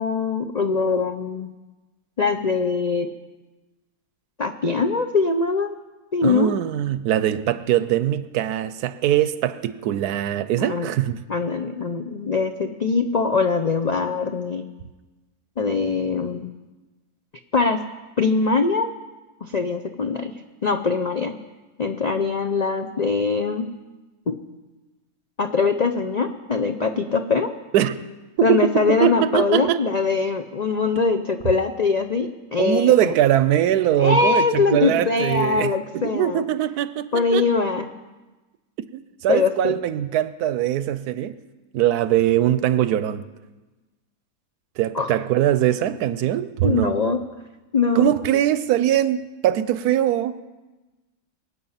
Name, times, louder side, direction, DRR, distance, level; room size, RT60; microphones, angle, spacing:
voice 1, 0.0-1.5 2.2-3.1 4.4-5.7 6.1-6.5 10.6-10.9 11.3-14.7 15.6-16.5 17.5-17.8 18.2-18.9 19.4-20.3 20.6-21.3 21.8-23.7 24.3-24.4 25.4-27.5 28.4-33.1 34.0-36.4 37.1-37.9 39.3-39.7 44.9-45.2 46.6-47.2 47.7-48.1, left 4 dB, 80° left, 0.3 m, -22 dB
voice 2, 6.2-11.2 27.7-28.0 28.4-29.8 32.6-37.5 38.9-41.4 41.7-43.2 44.8-46.9 47.9-50.4, right 12 dB, 75° right, 1.1 m, -21 dB
23.5 x 8.3 x 5.7 m
omnidirectional pair, 1.7 m